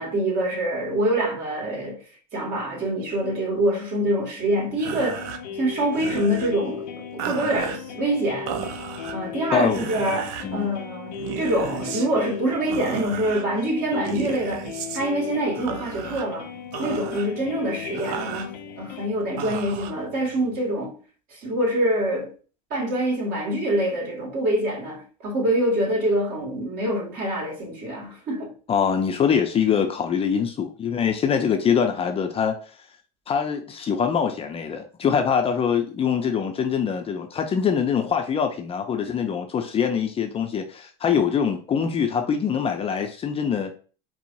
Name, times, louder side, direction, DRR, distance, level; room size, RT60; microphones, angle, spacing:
voice 1, 0.0-2.0 2.3-5.2 5.5-8.5 9.1-14.7 14.9-16.5 16.8-21.0 21.3-22.3 22.7-28.5, right 1 dB, 45° right, 1.7 m, -25 dB
sound 1, 4.7-20.6, right 9 dB, 70° right, 0.5 m, -36 dB
sound 2, 5.1-19.1, left 9 dB, 85° left, 0.6 m, -37 dB
voice 2, 9.5-9.9 10.4-10.7 28.7-32.6 33.3-43.7, left 7 dB, 25° left, 0.5 m, -23 dB
4.5 x 2.0 x 2.6 m
supercardioid pair, 100°, 21 cm